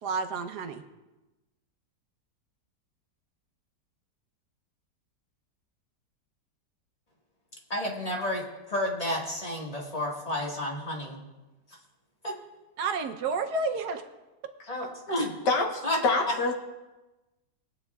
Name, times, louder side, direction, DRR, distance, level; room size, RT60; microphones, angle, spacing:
voice 1, 0.0-0.8 12.8-14.1, right 4 dB, 70° right, 6 dB, 1.3 m, -30 dB
voice 2, 7.7-11.2 12.2-12.3 14.7-15.3 15.8-16.0, left 1 dB, 20° left, -2 dB, 1.7 m, -31 dB
voice 3, 15.5-16.5, left 3 dB, 75° left, 3 dB, 1.8 m, -26 dB
21.5 x 8.8 x 2.3 m, 1.1 s
omnidirectional pair, 1.9 m